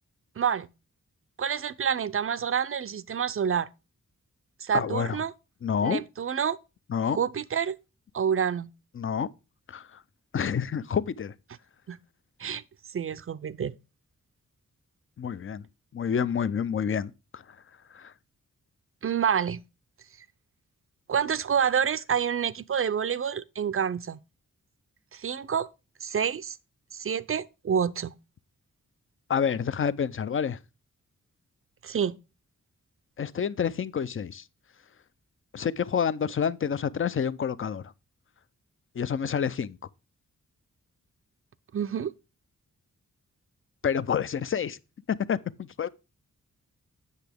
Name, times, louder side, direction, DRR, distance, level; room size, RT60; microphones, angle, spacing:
voice 1, 0.4-0.7 1.4-3.7 4.6-5.3 5.8-6.6 7.0-7.8 8.1-8.7 11.9-12.0 12.4-12.6 12.9-13.8 19.0-19.6 21.1-24.2 25.1-25.7 26.0-26.6 26.9-28.1 31.8-32.2 41.7-42.1, right 7 dB, 45° right, 0.5 m, -28 dB
voice 2, 4.7-5.2 5.6-6.0 6.9-7.2 8.9-9.3 9.7-10.0 10.3-11.3 15.2-15.7 15.9-17.4 17.9-18.1 29.3-30.6 33.2-34.4 35.5-37.9 39.0-39.8 43.8-44.8 45.1-45.9, left 7 dB, 40° left, 0.5 m, -28 dB
8.2 x 6.7 x 3.4 m
wide cardioid pair, 85°, 32 cm